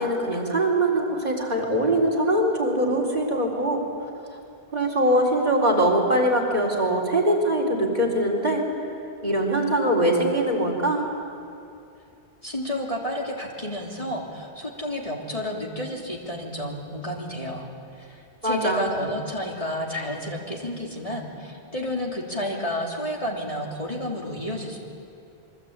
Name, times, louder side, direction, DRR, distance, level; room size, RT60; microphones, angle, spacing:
voice 1, 0.0-3.8 4.7-8.6 9.2-11.0 18.4-18.9, right 1 dB, 40° right, 0 dB, 4.3 m, -22 dB
voice 2, 12.4-17.7 17.9-24.8, left 1 dB, 35° left, -1 dB, 3.4 m, -31 dB
27.0 x 24.0 x 8.9 m, 2.6 s
omnidirectional pair, 1.1 m